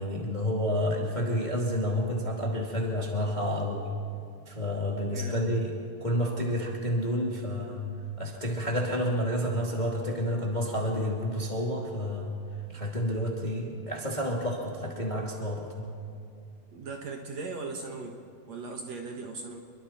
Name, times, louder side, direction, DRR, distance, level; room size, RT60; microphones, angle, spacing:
voice 1, 0.0-3.9 4.5-7.9 8.2-12.4 12.7-15.9, equal, 15° left, -1 dB, 1.9 m, -30 dB
voice 2, 5.1-5.5 16.7-18.2 18.5-19.6, right 3 dB, 55° right, 1 dB, 2.5 m, -38 dB
28.5 x 23.0 x 4.4 m, 2.5 s
omnidirectional pair, 4.1 m